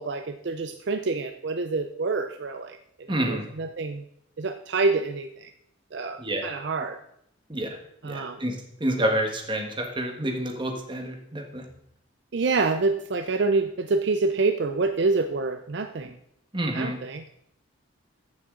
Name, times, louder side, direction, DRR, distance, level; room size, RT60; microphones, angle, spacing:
voice 1, 0.0-4.1 4.4-5.5 5.9-7.0 8.0-8.4 12.3-16.2 16.7-17.4, right 3 dB, 60° right, 8 dB, 0.5 m, -27 dB
voice 2, 3.1-3.5 6.2-6.4 7.5-7.7 8.0-8.5 8.8-11.6 16.5-17.0, right 1 dB, 25° right, 3 dB, 1.5 m, -28 dB
14.5 x 7.4 x 3.8 m, 0.73 s
head